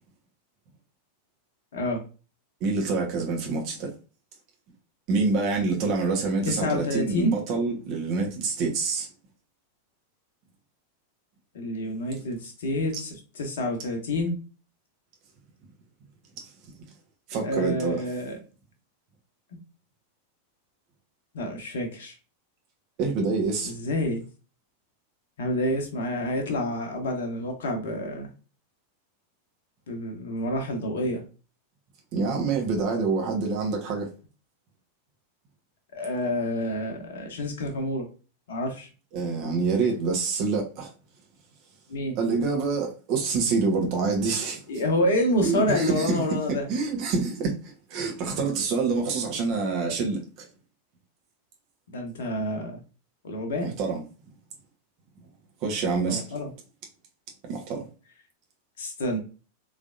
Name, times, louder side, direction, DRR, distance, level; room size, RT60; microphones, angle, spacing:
voice 1, 2.6-3.9 5.1-9.1 17.3-18.0 23.0-23.7 32.1-34.1 39.1-40.9 42.2-44.6 45.4-46.2 46.5-50.5 53.6-54.1 55.6-56.2 57.5-57.9, right 4 dB, 40° right, 1.1 m, -26 dB
voice 2, 6.5-7.3 11.5-14.4 17.4-18.4 21.3-22.1 23.6-24.2 25.4-28.3 29.9-31.2 35.9-38.1 38.5-38.9 41.9-42.2 44.7-46.7 51.9-52.8 53.2-53.7 56.1-56.5 58.8-59.2, left 1 dB, 60° left, 0.9 m, -28 dB
3.7 x 3.3 x 2.5 m
figure-of-eight pair, 90°, 0 cm